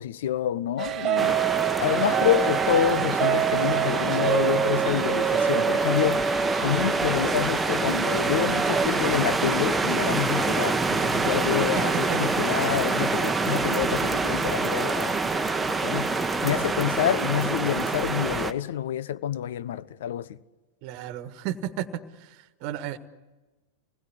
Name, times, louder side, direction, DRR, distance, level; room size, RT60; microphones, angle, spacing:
voice 1, 0.0-1.4 1.8-15.2 15.7-20.4, left 10 dB, 60° left, 0.8 m, -28 dB
sound 1, 0.8-8.9, right 9 dB, 30° right, 0.8 m, -27 dB
sound 2, 1.2-18.5, right 3 dB, 10° right, 1.3 m, -26 dB
voice 2, 20.8-22.3 22.6-23.0, right 11 dB, 45° right, 1.5 m, -33 dB
27.0 x 20.0 x 10.0 m
figure-of-eight pair, 90°, 0 cm